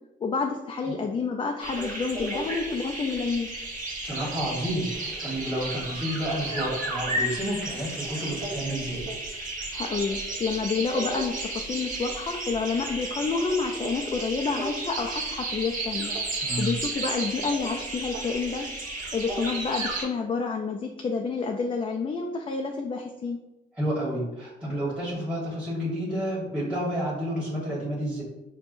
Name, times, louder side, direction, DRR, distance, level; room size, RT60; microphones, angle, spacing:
voice 1, 0.2-3.5 9.7-16.1 16.6-18.7 19.1-23.4, left 4 dB, 30° left, 2 dB, 0.3 m, -29 dB
sound 1, 1.6-20.1, right 2 dB, 40° right, 1.0 m, -33 dB
voice 2, 4.0-9.1 16.4-16.7 23.8-28.2, equal, 5° right, -8 dB, 1.2 m, -30 dB
5.2 x 2.2 x 2.5 m, 0.96 s
cardioid pair, 90°, 20 cm